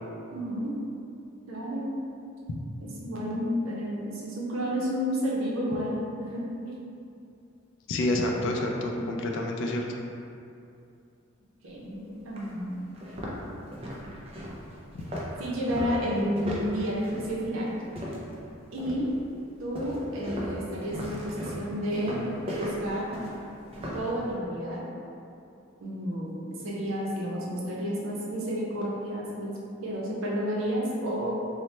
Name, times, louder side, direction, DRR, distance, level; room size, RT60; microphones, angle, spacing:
voice 1, 0.3-0.7 1.5-2.0 2.8-5.9 6.2-6.7 8.8-9.0 11.6-12.9 15.4-17.7 18.7-19.1 19.6-22.2 22.6-23.1 23.9-24.8 25.8-26.3 26.6-29.5 29.8-31.3, equal, 80° right, -4 dB, 0.6 m, -31 dB
voice 2, 7.9-9.9 14.9-15.0, left 1 dB, 60° left, 1 dB, 0.3 m, -28 dB
sound 1, 11.8-11.9 12.4-12.5 12.9-18.4 18.8-19.2 19.7-24.1, equal, 30° right, 0.4 m, -36 dB
2.9 x 2.0 x 3.2 m, 2.6 s
head